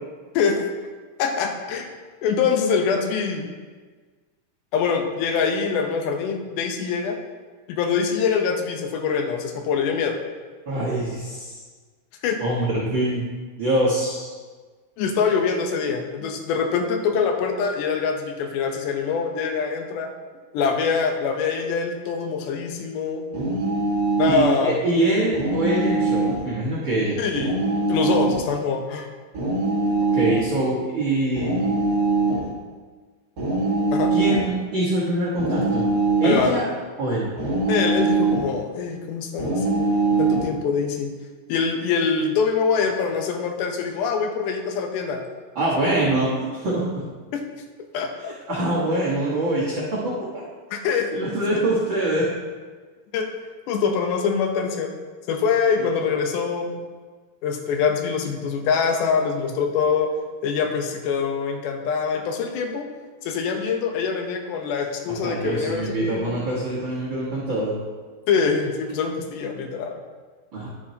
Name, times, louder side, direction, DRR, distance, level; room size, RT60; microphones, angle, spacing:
voice 1, 0.3-0.7 1.2-1.9 2.2-3.6 4.7-7.2 7.7-10.2 12.2-12.4 15.0-20.1 20.5-23.2 24.2-24.8 27.2-27.5 27.9-29.1 33.9-34.1 36.2-36.6 37.7-39.8 40.2-41.1 41.5-45.2 47.3-47.4 47.9-48.3 50.7-51.1 53.1-53.3 53.7-54.9 55.3-56.8 57.4-60.1 60.4-62.9 63.2-66.4 68.3-70.0, left 5 dB, 75° left, 4 dB, 2.0 m, -24 dB
voice 2, 10.6-11.6 12.4-13.3 13.6-14.3 24.2-27.2 30.1-31.5 34.1-35.9 36.2-36.6 37.0-37.3 45.5-46.8 48.2-50.1 51.1-52.3 55.8-55.9 65.2-67.8 70.5-70.7, right 1 dB, 65° right, -8 dB, 1.1 m, -24 dB
sound 1, 23.3-24.5 25.3-26.5 27.3-28.5 29.3-30.4 31.4-32.5 33.4-34.5 35.4-36.5 37.4-38.5 39.4-40.5, right 3 dB, 90° right, 0.8 m, -22 dB
11.5 x 7.5 x 2.8 m, 1.4 s
omnidirectional pair, 4.4 m